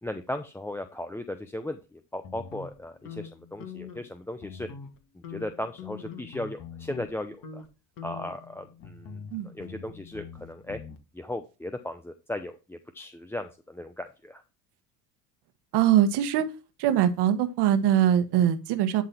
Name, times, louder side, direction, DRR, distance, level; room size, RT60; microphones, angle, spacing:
voice 1, 0.0-4.7 5.1-7.7 8.0-10.8 11.1-14.4, left 1 dB, 5° left, 9 dB, 0.7 m, -37 dB
sound 1, 2.2-4.1 4.4-5.0 5.2-7.1 7.4-7.7 8.0-11.0, left 6 dB, 40° left, 2.0 m, -43 dB
voice 2, 15.7-16.5 16.8-19.0, right 10 dB, 55° right, 9 dB, 1.4 m, -22 dB
11.0 x 3.9 x 4.4 m, 0.30 s
hypercardioid pair, 70°, 49 cm